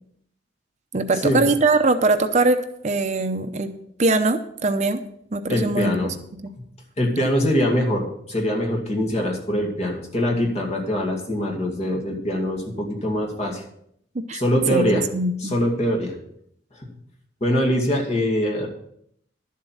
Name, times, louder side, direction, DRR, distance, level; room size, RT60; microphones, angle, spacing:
voice 1, 0.9-3.7 4.0-5.0 5.3-6.1 6.4-6.5 14.1-14.4 14.7-15.5, right 2 dB, 40° right, 8 dB, 0.7 m, -22 dB
voice 2, 5.5-6.1 7.0-13.6 14.3-15.0 15.4-16.2 16.8-16.9 17.4-18.7, equal, 40° left, 0 dB, 2.3 m, -23 dB
11.5 x 7.5 x 5.7 m, 0.71 s
head